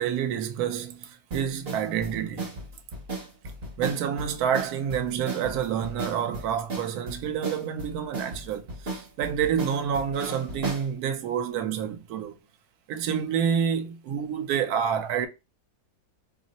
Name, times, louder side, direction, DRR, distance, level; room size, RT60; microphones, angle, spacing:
voice 1, 0.0-2.5 3.8-12.4 12.9-15.3, right 8 dB, 75° right, 1.0 m, -28 dB
sound 1, 1.3-10.9, right 3 dB, 45° right, 0.9 m, -36 dB
2.7 x 2.0 x 3.9 m
omnidirectional pair, 1.7 m